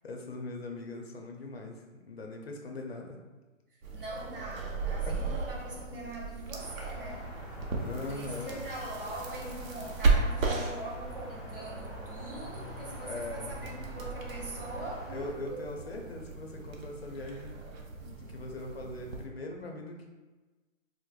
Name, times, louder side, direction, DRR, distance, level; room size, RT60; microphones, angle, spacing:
voice 1, 0.0-3.2 5.0-5.4 7.4-8.6 13.0-13.5 15.1-17.6 18.0-20.1, left 2 dB, 50° left, 2 dB, 0.5 m, -41 dB
sound 1, 3.8-19.3, right 3 dB, 75° right, 0.8 m, -35 dB
voice 2, 3.9-7.3 8.0-15.7, right 1 dB, 40° right, -3 dB, 0.7 m, -42 dB
sound 2, 6.5-15.3, equal, ahead, 0.6 m, -45 dB
4.7 x 2.1 x 2.3 m, 1.2 s
hypercardioid pair, 165°, 40 cm